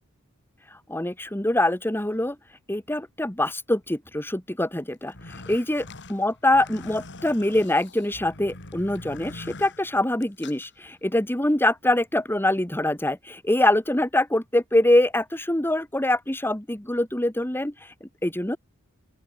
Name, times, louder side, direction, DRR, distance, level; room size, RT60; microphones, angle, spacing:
voice 1, 0.9-2.4 2.7-5.8 6.1-18.6, left 1 dB, 10° left, 1.8 m, -24 dB
sound 1, 5.0-10.7, left 2 dB, 55° left, 4.4 m, -43 dB
open air
head